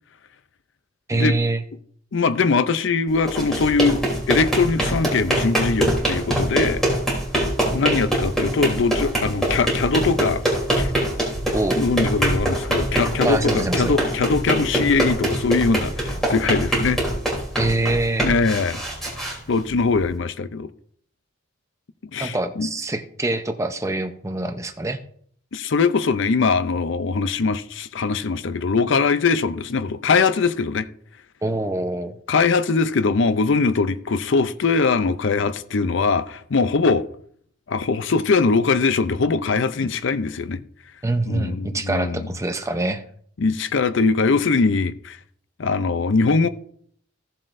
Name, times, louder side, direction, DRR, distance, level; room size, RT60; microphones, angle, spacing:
voice 1, 1.1-1.6 11.5-11.9 13.2-13.9 17.6-18.3 22.2-25.0 31.4-32.1 41.0-43.0, right 2 dB, 15° right, 0.7 m, -24 dB
voice 2, 2.1-4.0 4.3-6.8 7.7-10.4 10.7-10.9 11.8-17.0 18.2-18.8 19.5-20.7 22.1-22.7 25.5-30.9 32.3-37.1 37.7-40.6 41.3-42.3 43.4-45.2 45.6-46.5, left 4 dB, 60° left, 0.5 m, -21 dB
sound 1, 3.1-20.1, right 1 dB, ahead, 3.2 m, -24 dB
16.0 x 7.4 x 2.6 m
head